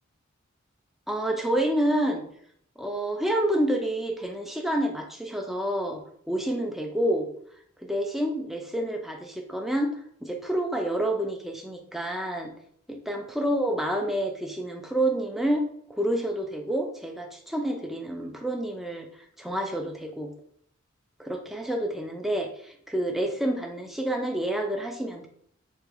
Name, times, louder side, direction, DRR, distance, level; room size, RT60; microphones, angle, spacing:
voice 1, 1.1-2.2 2.8-6.0 6.3-7.3 7.8-12.5 12.9-15.7 16.0-19.1 19.4-20.3 21.2-25.3, right 1 dB, ahead, 2 dB, 0.4 m, -28 dB
3.5 x 2.8 x 3.3 m, 0.65 s
head